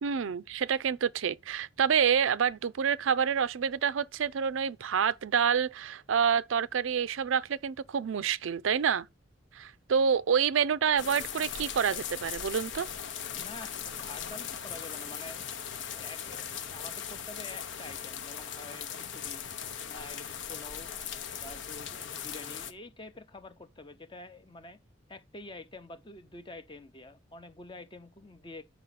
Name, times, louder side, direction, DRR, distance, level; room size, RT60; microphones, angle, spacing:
voice 1, 0.0-9.1 9.5-12.9, right 7 dB, 80° right, 0.4 m, -28 dB
sound 1, 11.0-22.7, left 8 dB, 65° left, 0.8 m, -39 dB
voice 2, 13.4-15.4 15.9-19.4 19.9-20.9 21.4-24.8 25.1-28.6, left 2 dB, 25° left, 0.7 m, -47 dB
8.5 x 6.0 x 4.1 m
head